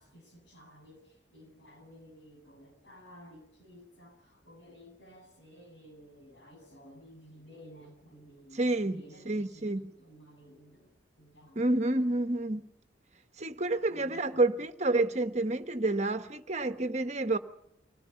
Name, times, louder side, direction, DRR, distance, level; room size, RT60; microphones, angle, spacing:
voice 1, 0.0-12.2 13.9-14.7, equal, 75° left, 7.7 m, -54 dB
voice 2, 8.6-9.8 11.5-12.7 13.4-17.4, right 2 dB, 40° right, 1.3 m, -29 dB
25.0 x 17.0 x 7.0 m
head